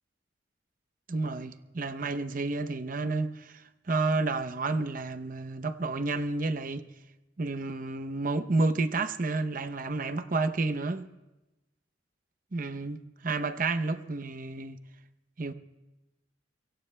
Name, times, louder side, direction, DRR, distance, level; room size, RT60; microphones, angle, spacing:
voice 1, 1.1-6.9 7.4-11.1 12.5-14.8 15.4-15.5, right 3 dB, 45° right, 0.7 m, -30 dB
26.5 x 23.5 x 2.2 m
head